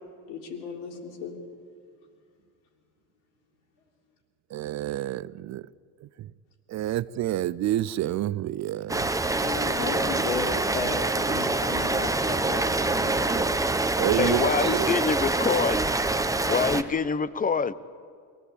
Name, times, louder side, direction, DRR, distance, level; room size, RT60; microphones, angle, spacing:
voice 1, 0.3-1.4 9.4-13.4, left 4 dB, 75° left, 3.7 m, -35 dB
voice 2, 4.5-5.6 6.2-6.3 6.7-9.1 14.0-14.9, right 13 dB, 35° right, 0.5 m, -28 dB
Rain, 8.9-16.8, right 2 dB, 5° right, 1.0 m, -25 dB
voice 3, 14.2-15.9 16.5-17.7, left 5 dB, 15° left, 0.8 m, -26 dB
23.5 x 16.5 x 8.5 m
hypercardioid pair, 85°, 48 cm